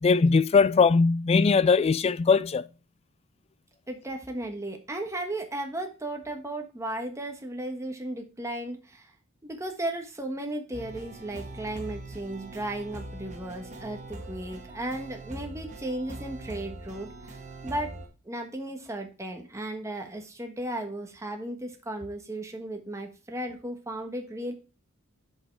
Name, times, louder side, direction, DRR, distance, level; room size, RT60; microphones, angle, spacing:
voice 1, 0.0-2.7, left 4 dB, 30° left, 0.3 m, -20 dB
voice 2, 3.9-9.1 9.4-17.4 17.6-18.0 18.2-24.5, right 1 dB, 15° right, 1.3 m, -35 dB
sound 1, 10.7-18.1, right 1 dB, 35° right, 1.8 m, -42 dB
7.4 x 5.4 x 4.6 m
head